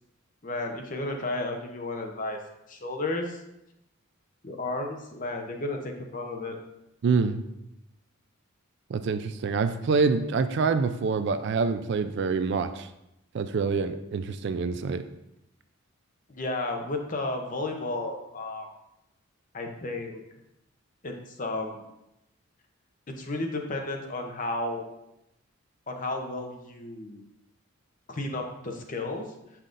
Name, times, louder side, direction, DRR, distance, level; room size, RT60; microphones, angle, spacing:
voice 1, 0.4-2.4 2.7-3.4 4.4-6.6 16.3-18.7 19.5-20.2 21.0-21.9 23.1-24.9 25.9-27.2 28.1-29.3, left 2 dB, 40° left, 3 dB, 0.7 m, -33 dB
voice 2, 7.0-7.4 8.9-12.9 13.3-15.0, right 4 dB, 55° right, 11 dB, 0.3 m, -26 dB
6.6 x 5.6 x 2.5 m, 0.86 s
head